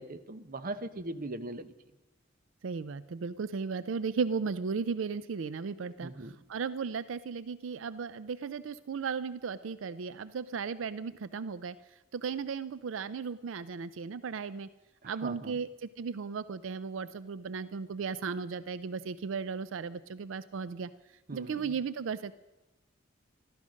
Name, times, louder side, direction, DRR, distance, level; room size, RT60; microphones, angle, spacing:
voice 1, 0.0-1.7 6.0-6.4 15.0-15.6 21.3-21.7, right 2 dB, 45° right, 12 dB, 0.8 m, -40 dB
voice 2, 2.6-11.8 12.1-14.7 15.0-20.9 21.3-22.3, right 5 dB, 85° right, 16 dB, 0.4 m, -35 dB
14.5 x 13.0 x 6.3 m, 1.0 s
head